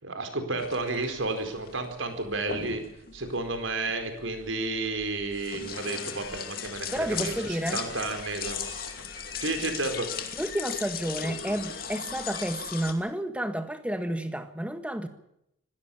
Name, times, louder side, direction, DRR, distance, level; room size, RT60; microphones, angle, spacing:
voice 1, 0.0-2.8 3.1-8.9 9.4-10.1, right 3 dB, 80° right, 4.6 m, -32 dB
sound 1, 0.6-12.9, left 7 dB, 50° left, 2.6 m, -38 dB
sound 2, 5.7-12.5, left 5 dB, 85° left, 4.4 m, -45 dB
voice 2, 6.9-7.8 10.3-15.1, right 1 dB, 5° right, 1.6 m, -31 dB
25.5 x 17.0 x 7.2 m
head